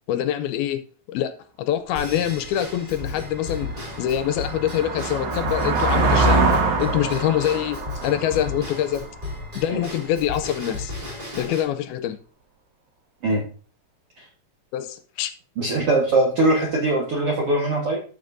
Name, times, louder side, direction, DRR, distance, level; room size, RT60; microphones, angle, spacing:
voice 1, 0.1-0.8 1.1-1.3 1.6-3.7 4.0-6.5 6.8-9.1 9.6-10.9 11.3-12.2 14.7-15.3, left 11 dB, 85° left, 2.4 m, -25 dB
Drum kit / Drum / Bell, 1.9-11.6, left 3 dB, 20° right, 1.3 m, -35 dB
sound 1, 2.5-2.6 3.1-9.6, right 3 dB, 85° right, 3.8 m, -24 dB
voice 2, 15.6-18.0, right 2 dB, 65° right, 1.5 m, -21 dB
13.0 x 6.7 x 2.6 m
omnidirectional pair, 4.6 m